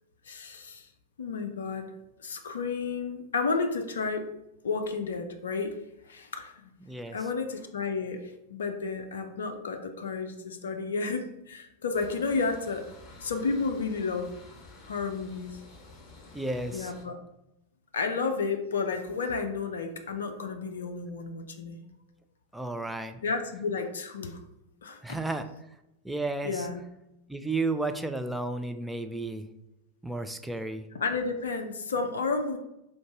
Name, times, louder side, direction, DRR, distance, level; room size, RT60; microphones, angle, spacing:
voice 1, 0.2-0.9 1.2-1.9 2.2-4.3 4.6-5.8 6.1-6.5 7.1-12.9 13.2-14.4 14.9-15.6 16.7-17.2 17.9-21.8 23.2-24.4 24.8-25.2 26.4-26.8 31.0-32.6, left 4 dB, 65° left, 5 dB, 0.4 m, -31 dB
voice 2, 6.8-7.3 16.3-16.9 22.5-23.2 25.0-25.5 26.0-26.7 27.3-29.5 30.0-30.8, right 2 dB, 5° right, 7 dB, 0.4 m, -33 dB
sound 1, 11.9-17.0, left 2 dB, 30° left, 1.1 m, -50 dB
3.7 x 2.6 x 4.6 m, 0.88 s
figure-of-eight pair, 90°, 0 cm